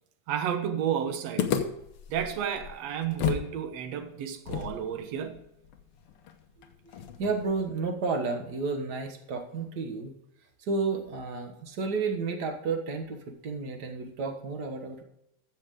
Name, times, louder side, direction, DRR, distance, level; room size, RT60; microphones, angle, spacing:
voice 1, 0.3-1.5 2.1-5.4, right 8 dB, 65° right, 7 dB, 2.1 m, -31 dB
sound 1, 1.4-3.5 3.8-3.9 4.5-7.6, left 8 dB, 65° left, 1.4 m, -33 dB
voice 2, 7.2-10.1 10.6-15.0, right 4 dB, 45° right, 5 dB, 1.3 m, -31 dB
13.5 x 7.8 x 3.7 m, 0.84 s
omnidirectional pair, 3.6 m